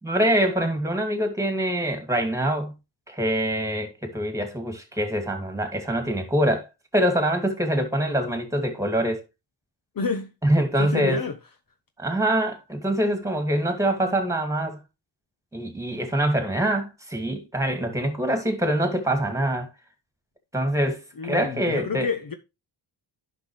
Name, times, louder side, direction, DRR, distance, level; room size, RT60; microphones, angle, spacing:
voice 1, 0.0-2.7 3.1-6.7 6.9-9.2 10.4-11.2 12.0-14.8 15.5-19.7 20.5-22.1, right 1 dB, 5° right, 2.4 m, -24 dB
voice 2, 10.0-10.3 10.8-11.4 21.2-22.3, left 5 dB, 45° left, 0.9 m, -29 dB
10.5 x 5.9 x 3.2 m
cardioid pair, 80°, 47 cm